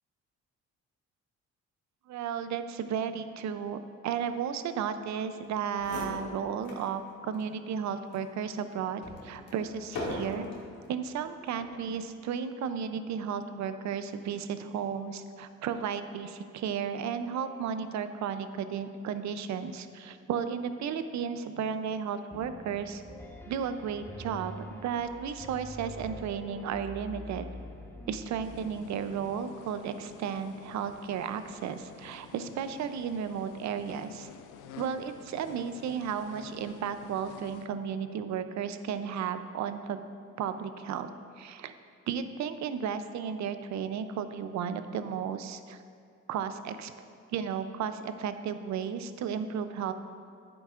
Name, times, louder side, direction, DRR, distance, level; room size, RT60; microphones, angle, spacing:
voice 1, 2.1-10.5 10.9-23.0 23.5-27.4 28.1-34.3 34.8-40.0 40.4-41.1 41.4-41.7 42.1-45.8 46.3-46.9 47.3-49.9, right 7 dB, 65° right, 10 dB, 0.6 m, -34 dB
sound 1, 5.5-5.6 5.7-6.9 7.3-7.5 8.1-10.7 11.5-11.8, left 1 dB, 65° left, 1.8 m, -40 dB
Piano, 22.3-29.3, left 1 dB, 10° left, 0.9 m, -45 dB
sound 2, 28.4-37.7, left 8 dB, 85° left, 0.6 m, -51 dB
10.5 x 8.7 x 2.5 m, 2.4 s
cardioid pair, 90°, 30 cm